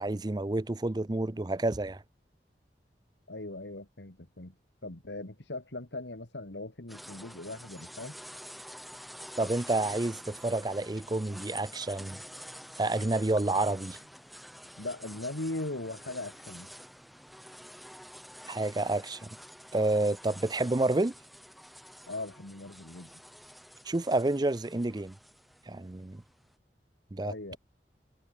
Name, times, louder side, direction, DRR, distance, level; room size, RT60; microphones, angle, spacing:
voice 1, 0.0-2.0 9.4-12.2 12.8-14.0 18.5-19.3 19.7-21.1 23.9-25.2 25.7-26.2 27.1-27.6, right 2 dB, 25° right, 0.5 m, -29 dB
voice 2, 3.3-4.6 4.8-8.2 14.8-16.7 22.1-23.1 27.2-27.6, left 2 dB, 85° left, 2.3 m, -39 dB
sound 1, 6.9-26.4, equal, ahead, 1.2 m, -48 dB
head